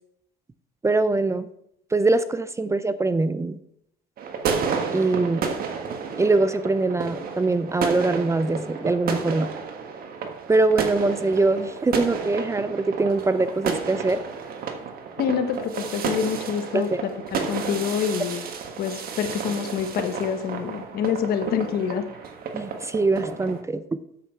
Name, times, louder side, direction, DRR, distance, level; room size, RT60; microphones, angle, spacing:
voice 1, 0.8-1.5 1.9-3.6 4.9-5.4 6.2-9.5 10.5-14.2 16.7-16.8 22.5-23.8, right 3 dB, 15° right, 13 dB, 0.5 m, -23 dB
sound 1, 4.2-23.6, right 5 dB, 60° right, 1.5 m, -31 dB
voice 2, 15.2-18.4 18.8-22.0, left 7 dB, 65° left, 8 dB, 1.3 m, -26 dB
8.3 x 7.6 x 4.5 m, 0.74 s
cardioid pair, 110°, 17 cm